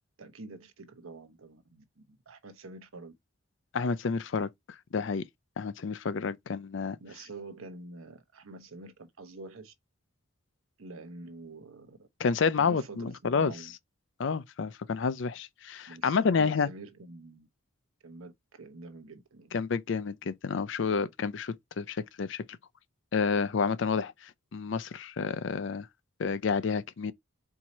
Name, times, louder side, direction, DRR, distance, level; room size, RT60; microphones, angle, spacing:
voice 1, 0.2-3.1 7.0-9.7 10.8-12.1 12.6-13.7 15.9-17.5 18.0-19.5, right 3 dB, 90° right, 0.9 m, -47 dB
voice 2, 3.7-4.5 4.9-5.2 5.6-7.0 12.2-13.5 14.2-16.7 19.5-22.4 23.1-25.9 26.2-27.1, left 5 dB, 60° left, 0.4 m, -29 dB
4.6 x 2.8 x 4.1 m
head